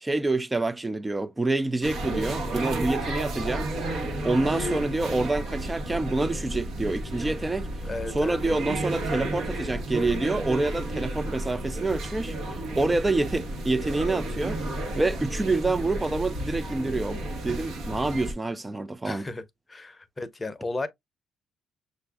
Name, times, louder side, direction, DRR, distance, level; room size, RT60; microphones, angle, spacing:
voice 1, 0.0-3.7 4.2-7.7 8.1-14.6 15.0-19.3, right 2 dB, 20° right, 0.3 m, -27 dB
sound 1, 1.8-18.3, right 1 dB, 75° right, 1.2 m, -32 dB
voice 2, 7.8-8.4 19.0-19.4 19.7-20.9, left 2 dB, 25° left, 0.6 m, -34 dB
6.2 x 2.5 x 2.3 m
cardioid pair, 90°, 0 cm